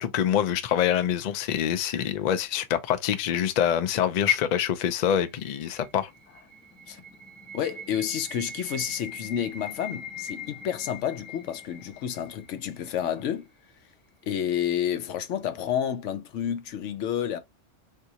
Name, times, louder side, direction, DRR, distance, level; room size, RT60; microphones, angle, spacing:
voice 1, 0.0-6.1, left 9 dB, 65° left, 0.4 m, -25 dB
sound 1, 4.3-13.3, left 2 dB, 10° left, 0.7 m, -43 dB
voice 2, 7.5-13.5 14.2-17.4, left 9 dB, 80° left, 0.9 m, -30 dB
3.6 x 2.7 x 2.7 m
omnidirectional pair, 1.3 m